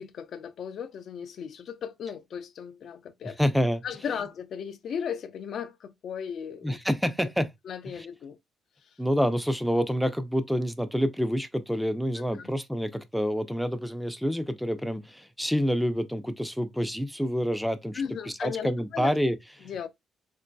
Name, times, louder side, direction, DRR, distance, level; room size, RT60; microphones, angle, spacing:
voice 1, 0.0-3.4 3.8-6.8 7.2-7.3 7.6-8.4 12.4-12.5 17.9-19.1 19.6-19.9, left 7 dB, 65° left, 0.4 m, -36 dB
voice 2, 3.2-3.8 6.6-7.5 8.0-8.1 9.0-18.0 18.4-19.9, equal, ahead, 0.5 m, -27 dB
3.7 x 2.6 x 2.2 m
cardioid pair, 90°, 0 cm